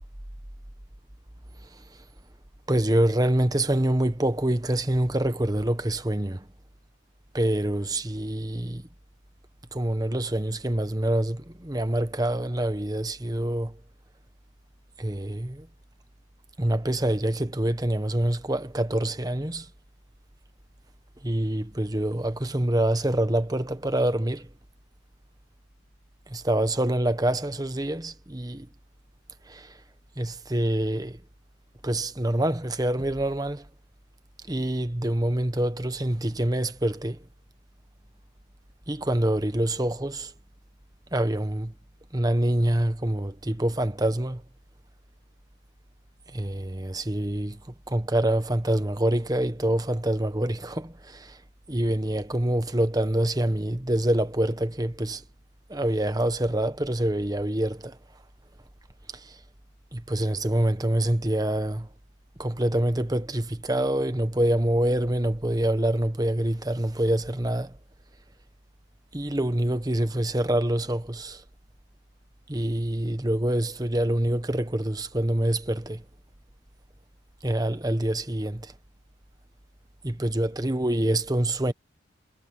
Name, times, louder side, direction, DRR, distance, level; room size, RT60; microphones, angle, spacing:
voice 1, 2.7-6.5 7.3-8.8 9.7-13.8 15.0-15.7 16.6-19.7 21.2-24.5 26.3-28.7 29.5-29.8 30.2-31.2 31.8-33.7 34.5-37.2 38.9-40.3 41.1-41.7 42.1-44.4 46.3-47.6 47.9-51.4 51.7-55.2 55.7-58.0 59.1-59.4 59.9-61.9 62.4-67.8 69.1-71.4 72.5-76.0 77.4-78.7 80.0-81.7, right 1 dB, 20° right, 1.1 m, -26 dB
head